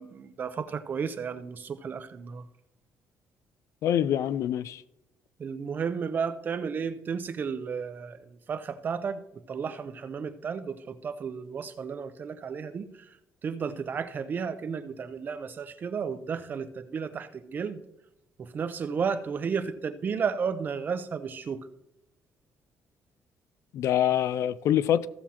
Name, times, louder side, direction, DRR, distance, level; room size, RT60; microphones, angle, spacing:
voice 1, 0.0-2.4 5.4-9.2 9.5-12.9 13.4-17.8 18.4-21.6, right 6 dB, 35° right, 0.5 m, -33 dB
voice 2, 3.8-4.8 23.7-25.1, left 10 dB, 60° left, 0.3 m, -25 dB
15.0 x 7.2 x 2.9 m
cardioid pair, 155°, 6 cm